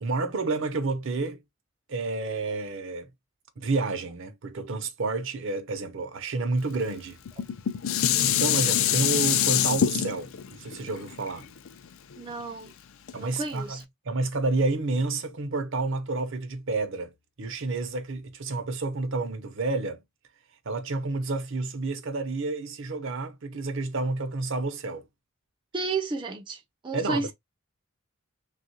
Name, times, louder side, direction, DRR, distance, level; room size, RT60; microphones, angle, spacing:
voice 1, 0.0-1.4 1.9-3.1 3.6-7.2 8.2-11.5 13.1-13.8 14.0-20.0 20.7-25.0 26.9-27.3, right 3 dB, 60° right, 0.7 m, -30 dB
Dishes pots and pans, 7.3-12.5 13.1-13.2, left 10 dB, 65° left, 0.4 m, -25 dB
voice 2, 12.2-12.7 13.2-13.8 25.7-27.3, right 3 dB, 20° right, 0.4 m, -32 dB
3.4 x 2.4 x 2.7 m
head